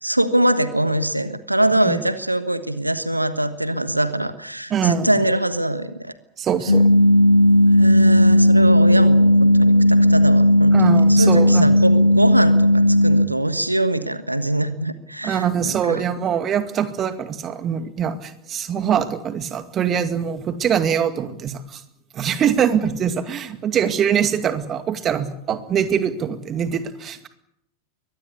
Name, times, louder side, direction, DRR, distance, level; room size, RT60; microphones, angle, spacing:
voice 1, 0.0-6.1 7.7-16.0, right 1 dB, 85° right, 12 dB, 1.3 m, -23 dB
voice 2, 4.7-5.1 6.4-7.1 10.7-11.7 15.2-21.8 22.1-27.3, right 8 dB, 30° right, 10 dB, 2.3 m, -23 dB
sound 1, 6.7-13.3, left 1 dB, 80° left, 1.7 m, -14 dB
23.0 x 19.5 x 8.4 m, 0.79 s
figure-of-eight pair, 90°, 0 cm